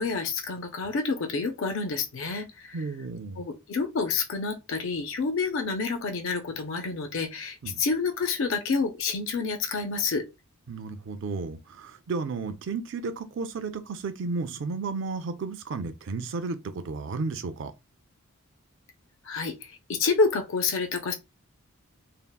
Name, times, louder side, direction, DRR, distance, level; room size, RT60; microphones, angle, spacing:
voice 1, 0.0-2.8 3.4-10.2 19.2-19.5 19.9-21.1, left 4 dB, 55° left, 0.4 m, -28 dB
voice 2, 2.7-3.4 7.6-7.8 10.7-17.7, right 4 dB, 55° right, 0.4 m, -33 dB
3.5 x 2.1 x 2.2 m
head